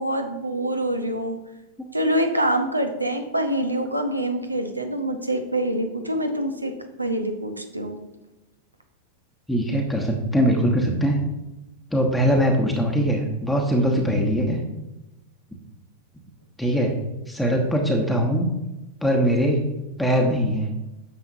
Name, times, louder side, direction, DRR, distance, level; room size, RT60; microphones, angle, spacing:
voice 1, 0.0-1.4 1.9-6.7 7.0-8.0, right 1 dB, 85° right, 6 dB, 0.8 m, -25 dB
voice 2, 9.5-11.2 11.9-14.6 16.6-17.0 17.3-18.5 19.0-19.7 20.0-20.7, equal, 5° left, 1 dB, 1.0 m, -21 dB
9.5 x 6.9 x 2.7 m, 1.0 s
figure-of-eight pair, 90°, 0 cm